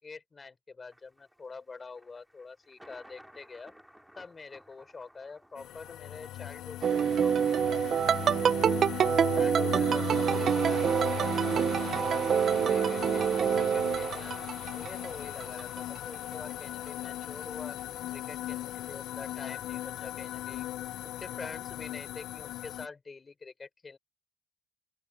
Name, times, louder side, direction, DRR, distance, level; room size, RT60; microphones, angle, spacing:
voice 1, 0.0-3.7 4.2-7.8 9.3-14.4 14.7-17.8 18.1-20.7 21.2-24.0, left 4 dB, 30° left, 5.4 m, -46 dB
Thunder, 0.9-13.2, equal, ahead, 2.9 m, -60 dB
sound 1, 5.6-22.9, left 14 dB, 85° left, 0.3 m, -38 dB
sound 2, 6.8-15.1 15.4-16.0, right 8 dB, 60° right, 0.3 m, -26 dB
open air
cardioid pair, 90°, 0 cm